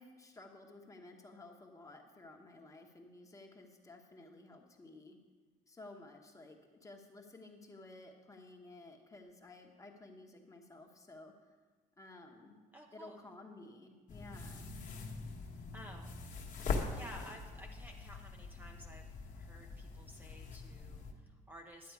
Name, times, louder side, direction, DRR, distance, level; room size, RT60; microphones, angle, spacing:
voice 1, 0.0-5.2 5.7-11.3 12.0-12.6 12.9-14.7, left 2 dB, 20° left, 2 dB, 1.1 m, -54 dB
voice 2, 12.7-13.2 15.7-16.2 16.9-21.9, equal, 10° right, 1 dB, 0.7 m, -54 dB
sound 1, 14.1-21.1, left 4 dB, 50° left, 1.1 m, -42 dB
10.5 x 7.6 x 4.7 m, 1.4 s
cardioid pair, 110°, 17 cm